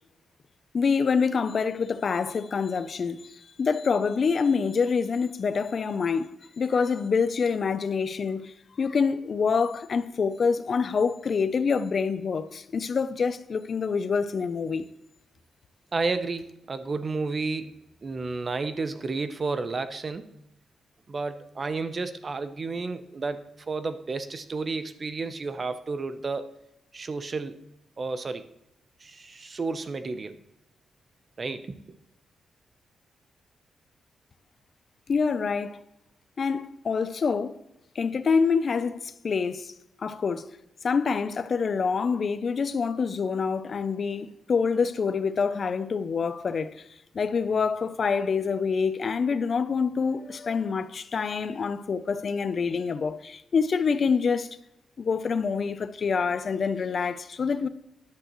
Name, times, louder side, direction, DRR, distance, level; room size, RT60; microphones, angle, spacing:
voice 1, 0.7-14.9 35.1-35.8 36.4-37.6 38.0-39.7 40.0-40.5 40.8-46.8 47.1-54.6 55.0-57.7, left 5 dB, 40° left, 0.5 m, -26 dB
voice 2, 15.9-17.7 18.0-20.3 21.1-26.5 26.9-27.6 28.0-28.4 29.0-30.4 31.4-31.8, right 3 dB, 30° right, 0.7 m, -31 dB
13.0 x 10.5 x 3.1 m
wide cardioid pair, 145°, 0 cm